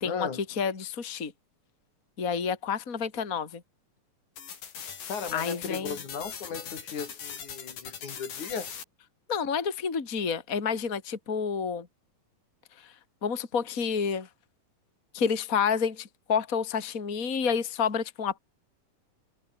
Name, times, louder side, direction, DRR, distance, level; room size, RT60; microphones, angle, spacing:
voice 1, 0.0-0.4 5.1-8.7, left 6 dB, 65° left, 4.5 m, -36 dB
voice 2, 0.6-1.3 2.2-3.6 5.3-5.9 9.3-11.9 12.8-12.9 13.2-14.3 15.1-18.4, left 6 dB, 25° left, 2.8 m, -29 dB
sound 1, 4.4-8.8, left 7 dB, 85° left, 4.9 m, -41 dB
omnidirectional pair, 3.8 m